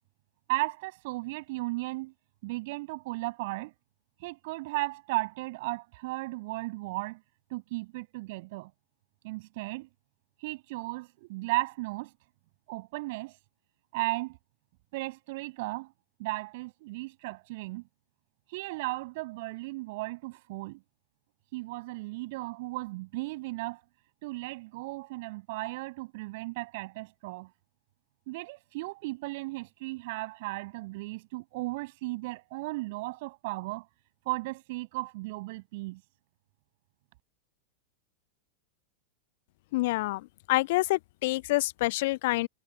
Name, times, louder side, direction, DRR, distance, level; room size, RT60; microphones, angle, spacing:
voice 1, 0.5-2.1 2.4-3.7 4.2-7.2 7.5-8.7 9.2-9.9 10.4-12.1 12.7-13.4 13.9-14.4 14.9-15.9 16.2-17.8 18.5-20.8 21.5-23.8 24.2-27.5 28.3-33.9 34.2-36.0, right 22 dB, 50° right, 6.4 m, -35 dB
voice 2, 39.7-40.2 40.5-42.5, left 20 dB, 50° left, 0.5 m, -27 dB
figure-of-eight pair, 90°, 0 cm